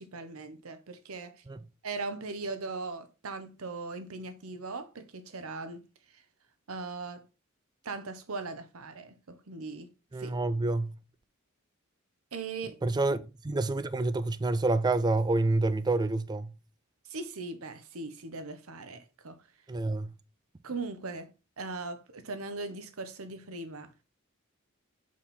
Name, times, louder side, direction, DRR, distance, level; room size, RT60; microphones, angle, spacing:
voice 1, 0.0-1.3 1.8-5.8 6.1-6.2 6.7-7.2 7.8-9.9 10.2-10.3 12.3-12.8 13.1-13.2 17.1-19.4 20.6-21.3 21.6-23.9, right 3 dB, 90° right, 0.9 m, -39 dB
voice 2, 10.1-11.0 12.8-13.2 13.4-16.5 19.7-20.1, right 2 dB, 20° right, 0.4 m, -28 dB
5.4 x 4.8 x 4.2 m
head